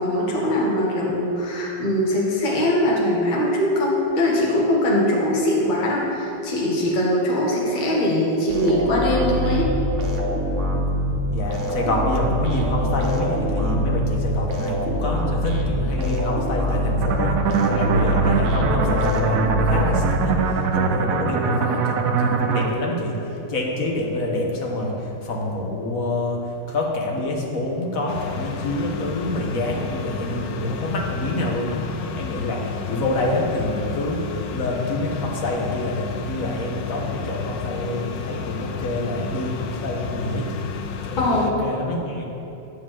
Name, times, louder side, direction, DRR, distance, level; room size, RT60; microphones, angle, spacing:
voice 1, 0.0-9.8 41.2-41.5, left 1 dB, 25° left, -4 dB, 1.4 m, -21 dB
sound 1, 8.5-20.7, equal, 50° right, 1.0 m, -24 dB
voice 2, 11.3-20.3 20.7-40.7 41.0-42.2, left 1 dB, 45° left, 0 dB, 1.5 m, -27 dB
sound 2, 17.0-22.7, right 5 dB, 75° right, 0.8 m, -22 dB
sound 3, 28.1-41.5, left 6 dB, 80° left, 0.8 m, -32 dB
9.8 x 5.0 x 7.5 m, 2.9 s
omnidirectional pair, 2.2 m